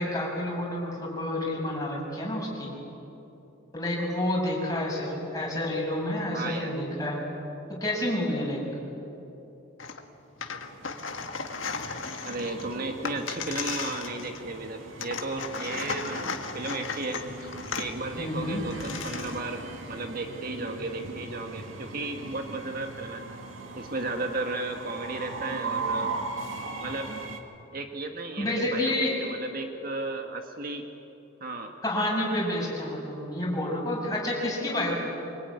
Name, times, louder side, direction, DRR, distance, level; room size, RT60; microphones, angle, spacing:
voice 1, 0.0-2.7 3.7-7.2 7.7-8.6 18.2-18.6 28.4-29.2 31.8-35.0, left 1 dB, 20° left, -3 dB, 6.8 m, -29 dB
voice 2, 6.3-6.7 12.2-19.6 19.9-23.2 23.8-26.1 26.8-27.1 27.7-30.9 31.4-31.7, right 2 dB, 45° right, 4 dB, 1.7 m, -34 dB
sound 1, 9.8-10.0 10.3-14.6 15.0-17.9 18.4-18.5 18.7-19.4, left 5 dB, 75° left, 1.8 m, -36 dB
Train, 10.6-27.4, right 3 dB, 85° right, 2.2 m, -39 dB
25.0 x 23.0 x 9.6 m, 2.9 s
head